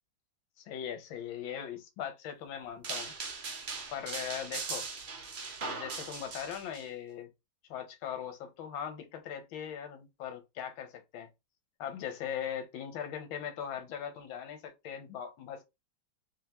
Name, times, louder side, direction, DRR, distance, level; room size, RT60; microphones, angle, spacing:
voice 1, 0.6-3.1 3.9-4.9 5.6-7.3 7.7-11.3 11.8-15.6, left 8 dB, 75° left, 1.6 m, -40 dB
sound 1, 2.8-6.8, right 4 dB, 45° right, 0.9 m, -39 dB
3.6 x 3.3 x 2.9 m
omnidirectional pair, 2.2 m